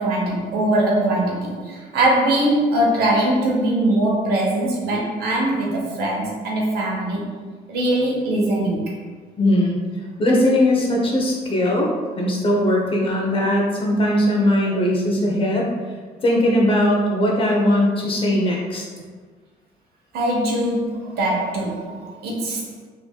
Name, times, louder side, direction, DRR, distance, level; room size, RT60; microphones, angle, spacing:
voice 1, 0.0-7.2 7.7-8.9 14.7-14.8 20.1-22.7, right 1 dB, 70° right, -2 dB, 1.0 m, -21 dB
voice 2, 9.4-9.8 10.2-15.7 16.2-18.8, left 1 dB, 30° left, -2 dB, 0.8 m, -19 dB
3.7 x 3.3 x 2.3 m, 1.5 s
cardioid pair, 110°, 17 cm